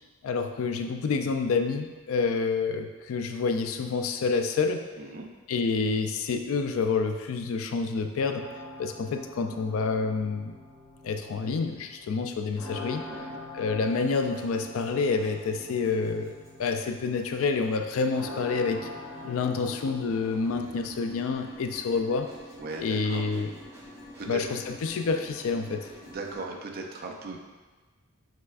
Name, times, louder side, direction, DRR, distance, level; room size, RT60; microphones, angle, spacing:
voice 1, 0.2-4.8 5.5-8.5 8.8-10.5 11.0-13.0 13.5-18.8 19.2-22.3 22.8-23.5 24.3-25.9, left 4 dB, 65° left, 6 dB, 0.3 m, -28 dB
voice 2, 5.0-5.3 13.1-13.4 22.6-23.2 24.2-24.4 26.1-27.4, right 3 dB, 45° right, 1 dB, 0.5 m, -38 dB
sound 1, 8.3-20.6, left 2 dB, 90° left, 1.2 m, -45 dB
sound 2, 13.8-26.4, left 1 dB, 10° right, 1.0 m, -48 dB
5.8 x 3.3 x 2.4 m, 1.3 s
head